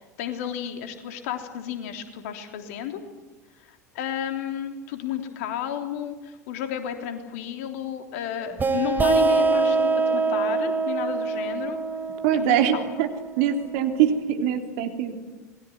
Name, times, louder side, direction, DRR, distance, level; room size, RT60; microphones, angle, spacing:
voice 1, 0.0-3.1 3.6-11.8 12.3-12.9, left 9 dB, 60° left, 6 dB, 3.4 m, -32 dB
sound 1, 8.6-14.0, right 4 dB, 20° right, 3.2 m, -24 dB
voice 2, 12.2-13.1 13.4-15.2, right 9 dB, 55° right, 5 dB, 3.4 m, -23 dB
27.0 x 21.5 x 9.6 m, 1.2 s
figure-of-eight pair, 80°, 9 cm